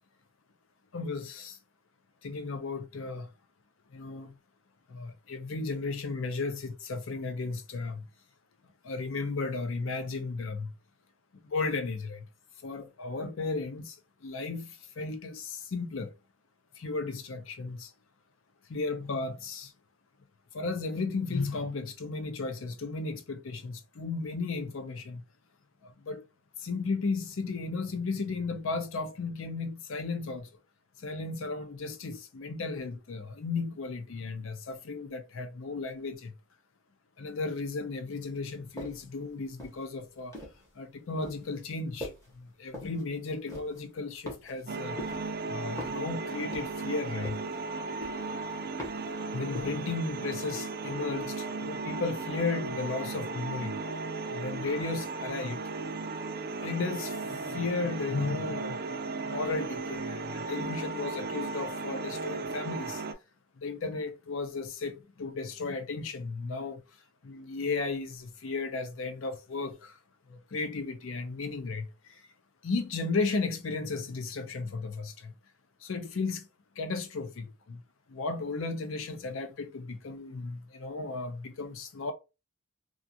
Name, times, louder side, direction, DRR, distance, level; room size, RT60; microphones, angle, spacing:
voice 1, 0.9-1.6 2.2-3.3 3.9-4.3 4.9-8.1 8.8-10.7 11.4-12.3 12.6-16.1 16.8-17.9 18.7-19.7 20.5-25.2 25.8-26.2 26.6-30.5 31.0-36.4 37.2-40.4 40.8-45.0 45.5-47.4 49.3-53.8 54.3-55.6 56.6-63.0 63.6-66.8 67.2-70.0 70.3-72.2 72.6-75.3 75.8-76.5 76.8-77.8 78.1-82.1, left 3 dB, 70° left, 0.5 m, -35 dB
sound 1, 38.8-39.1 39.6-40.7 41.2-41.5 42.0-42.3 42.7-43.0 43.5-43.8 44.3-44.7 45.0-45.3 45.8-46.1 46.5-46.9 47.2-47.6 48.0-48.4 48.8-49.1 49.5-49.8, left 1 dB, 15° left, 0.8 m, -42 dB
sound 2, 44.7-63.1, right 3 dB, 45° right, 0.4 m, -36 dB
2.4 x 2.4 x 2.6 m
head